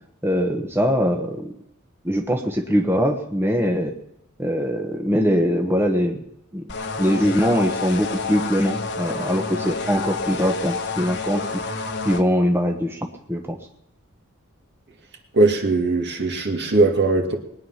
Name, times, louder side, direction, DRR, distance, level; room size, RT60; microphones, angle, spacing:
voice 1, 0.2-1.5 2.0-3.9 4.4-6.2 6.5-6.7 7.0-11.6 12.0-13.6, equal, 10° right, 2 dB, 1.1 m, -22 dB
sound 1, 6.7-12.2, left 4 dB, 55° left, 1.3 m, -29 dB
voice 2, 15.3-17.4, right 3 dB, 55° right, 3 dB, 2.2 m, -19 dB
21.0 x 9.7 x 5.7 m, 0.81 s
head